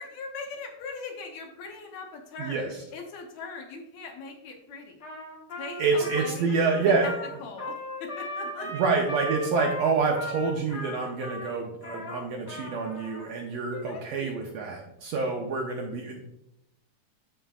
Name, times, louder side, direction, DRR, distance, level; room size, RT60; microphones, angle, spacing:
voice 1, 0.0-5.0 5.6-7.1 7.4-8.8 13.7-14.4, left 4 dB, 70° left, 3 dB, 2.0 m, -40 dB
Trumpet, 5.0-13.3, left 1 dB, 50° left, 1.3 m, -37 dB
voice 2, 5.8-7.1 8.6-16.2, right 4 dB, 75° right, 1 dB, 1.6 m, -27 dB
13.0 x 4.5 x 2.4 m, 0.85 s
omnidirectional pair, 3.5 m